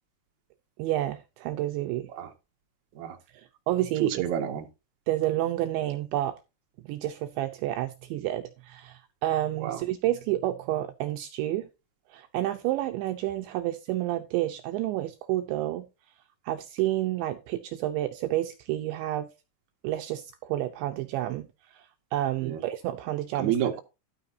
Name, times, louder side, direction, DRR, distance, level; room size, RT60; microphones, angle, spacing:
voice 1, 0.8-2.1 3.3-4.3 5.1-6.4 6.8-11.7 12.1-15.9 16.4-19.3 19.8-21.5 21.7-23.6, right 14 dB, 80° right, 2.8 m, -30 dB
voice 2, 4.0-4.6 9.6-9.8 22.4-22.6 23.4-23.8, right 10 dB, 55° right, 2.2 m, -29 dB
12.5 x 9.0 x 2.7 m
omnidirectional pair, 5.8 m